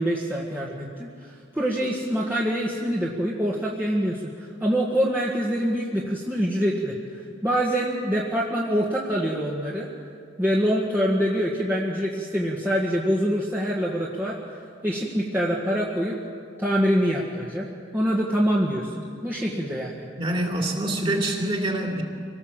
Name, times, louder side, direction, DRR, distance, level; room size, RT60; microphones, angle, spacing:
voice 1, 0.0-9.9 10.4-14.4 14.8-16.2 16.6-17.7 17.9-20.1, equal, 10° right, -5 dB, 1.7 m, -25 dB
voice 2, 20.2-22.0, right 1 dB, 25° right, 1 dB, 3.0 m, -25 dB
26.5 x 18.5 x 7.4 m, 2.3 s
head